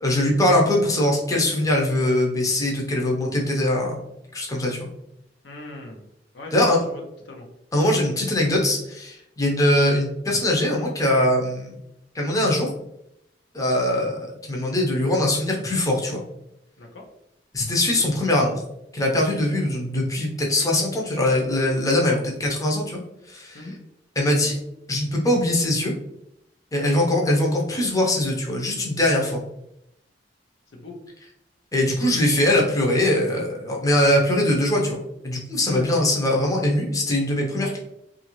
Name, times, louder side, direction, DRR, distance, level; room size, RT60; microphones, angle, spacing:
voice 1, 0.0-3.9 4.3-4.9 6.5-6.8 7.7-11.8 12.1-12.7 13.5-14.2 14.5-16.2 17.5-18.5 18.9-23.0 23.3-23.6 24.2-24.6 24.9-25.9 26.7-29.4 31.7-37.8, left 1 dB, 20° left, -1 dB, 0.6 m, -22 dB
voice 2, 5.4-6.0 6.3-7.5 16.8-17.1 22.0-22.3 23.5-23.8 30.7-31.0 35.7-36.1, left 2 dB, 85° left, 1 dB, 0.7 m, -39 dB
2.8 x 2.5 x 2.9 m, 0.79 s
head